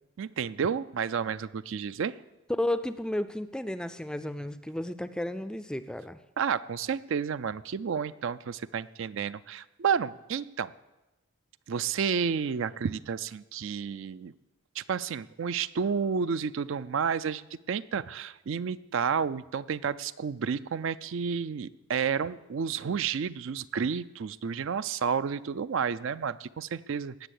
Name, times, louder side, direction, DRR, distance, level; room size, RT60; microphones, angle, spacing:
voice 1, 0.2-2.1 6.4-10.7 11.7-14.3 14.8-17.4 17.7-27.3, right 6 dB, 60° right, 16 dB, 0.4 m, -31 dB
voice 2, 2.5-6.2, left 1 dB, 5° left, 12 dB, 0.4 m, -32 dB
18.0 x 7.0 x 8.3 m, 1.0 s
head